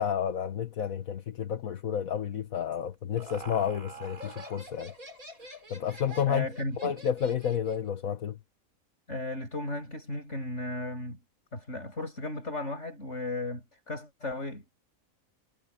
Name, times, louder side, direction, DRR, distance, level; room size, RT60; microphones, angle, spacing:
voice 1, 0.0-4.9 5.7-6.5 6.8-8.4, left 8 dB, 75° left, 1.6 m, -30 dB
Laughter, 2.7-7.9, right 1 dB, 75° right, 6.6 m, -46 dB
voice 2, 6.3-6.9 9.1-11.2 11.5-14.6, left 2 dB, 55° left, 8.2 m, -35 dB
omnidirectional pair, 1.5 m